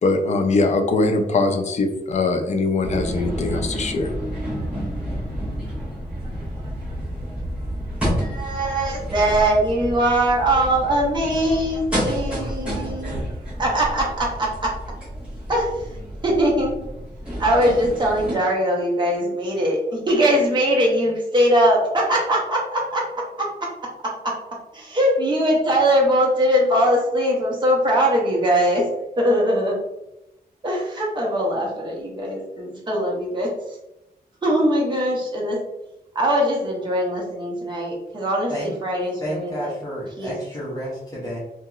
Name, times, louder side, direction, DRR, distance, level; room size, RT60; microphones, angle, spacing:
voice 1, 0.0-4.1, left 3 dB, 45° left, 5 dB, 0.4 m, -21 dB
sound 1, 2.8-18.4, equal, 5° right, 1.5 m, -30 dB
voice 2, 8.2-13.3 13.6-14.7 15.5-15.7 16.2-16.7 17.4-23.5 24.2-24.3 24.7-28.8 29.2-29.8 30.6-33.5 34.4-35.6 36.1-39.7 40.2-40.3, equal, 25° right, -3 dB, 0.8 m, -21 dB
voice 3, 39.2-41.4, equal, 20° left, -8 dB, 0.9 m, -30 dB
2.8 x 2.8 x 2.3 m, 0.90 s
wide cardioid pair, 140°, 17 cm